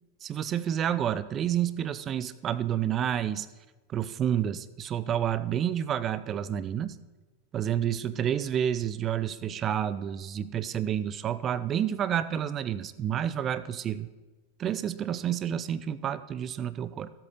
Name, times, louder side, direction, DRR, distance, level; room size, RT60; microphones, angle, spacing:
voice 1, 0.2-3.5 3.9-7.0 7.5-14.1 14.6-17.1, right 10 dB, 30° right, 16 dB, 0.4 m, -29 dB
14.5 x 8.2 x 4.0 m, 1.2 s
figure-of-eight pair, 90°, 0 cm